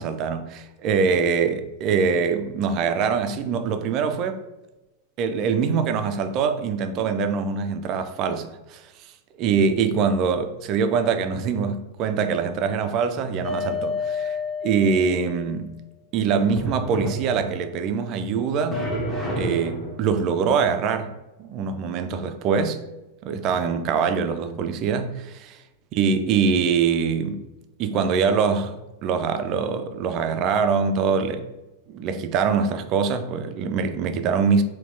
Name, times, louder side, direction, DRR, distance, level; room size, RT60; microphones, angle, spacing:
voice 1, 0.0-4.4 5.2-8.8 9.4-14.4 14.6-15.7 16.1-18.8 19.4-21.1 21.4-22.8 23.2-25.4 25.9-27.4 27.8-28.7 29.0-31.5 31.9-34.6, right 6 dB, 40° right, 0.4 m, -23 dB
sound 1, 13.4-15.4 16.6-17.8 18.7-20.1, left 2 dB, 15° left, 0.9 m, -29 dB
4.2 x 2.3 x 3.7 m
figure-of-eight pair, 90°, 0 cm